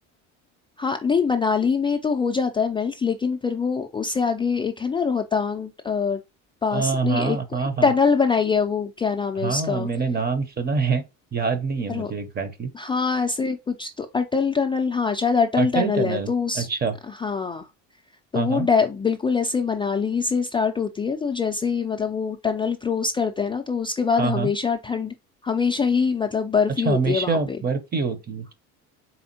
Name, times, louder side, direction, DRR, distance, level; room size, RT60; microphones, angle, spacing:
voice 1, 0.8-6.2 6.6-9.9 11.9-12.1 12.7-16.7 17.1-17.7 18.3-25.1 25.4-27.6, left 5 dB, 15° left, 0.4 m, -24 dB
voice 2, 6.7-7.9 9.4-11.0 11.3-12.7 15.6-16.3 16.5-16.9 18.3-18.7 24.2-24.5 26.8-28.5, right 5 dB, 30° right, 0.8 m, -25 dB
4.2 x 3.5 x 2.8 m
supercardioid pair, 100°, 33 cm